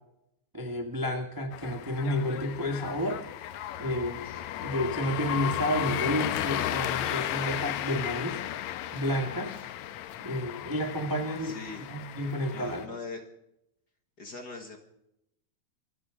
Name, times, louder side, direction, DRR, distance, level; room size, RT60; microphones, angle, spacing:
voice 1, 0.5-3.2 3.8-4.2 4.6-8.4 8.9-9.5 10.2-11.6 11.9-12.8, equal, 10° right, 3 dB, 0.9 m, -31 dB
sound 1, 1.5-12.9, left 12 dB, 75° left, 2.1 m, -34 dB
voice 2, 11.4-11.9 12.5-13.2 14.2-14.8, left 3 dB, 40° left, 4 dB, 1.8 m, -41 dB
24.5 x 15.5 x 3.8 m, 0.80 s
omnidirectional pair, 3.4 m